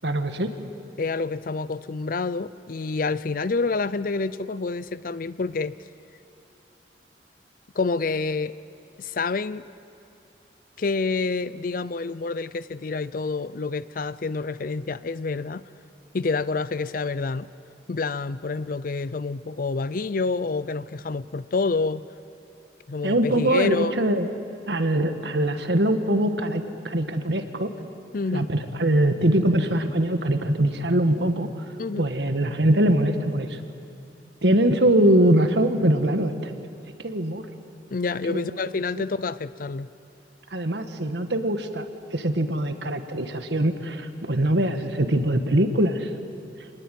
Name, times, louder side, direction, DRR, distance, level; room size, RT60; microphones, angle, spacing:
voice 1, 0.0-0.5 23.0-24.3 24.7-27.7 28.3-31.5 32.0-33.6 34.4-36.5 37.0-37.5 38.3-38.5 39.0-39.1 40.5-46.1, right 1 dB, 75° right, 7 dB, 1.7 m, -22 dB
voice 2, 1.0-5.7 7.8-8.5 9.0-9.6 10.8-15.6 16.1-17.5 17.9-22.0 22.9-24.0 28.1-28.5 31.8-32.1 37.9-39.9, left 4 dB, 50° left, 16 dB, 0.5 m, -28 dB
26.0 x 20.0 x 9.3 m, 2.7 s
head